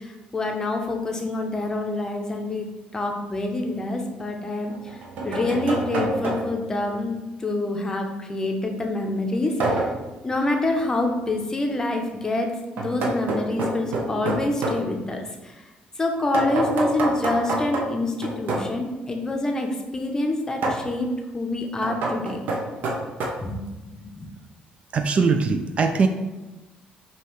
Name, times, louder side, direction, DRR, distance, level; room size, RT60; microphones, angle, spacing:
voice 1, 0.0-2.7 2.9-9.9 10.2-12.5 12.8-15.6 16.0-22.4 23.4-24.3, left 2 dB, 20° left, 3 dB, 0.6 m, -27 dB
sound 1, 3.4-3.5 4.7-6.7 9.6-10.1 12.8-14.9 16.3-18.8 20.6-20.9 21.8-23.3, right 2 dB, 65° right, 0.8 m, -27 dB
voice 2, 24.9-26.1, right 5 dB, 40° right, 7 dB, 0.3 m, -21 dB
5.2 x 2.8 x 3.1 m, 1.1 s
cardioid pair, 110°, 3 cm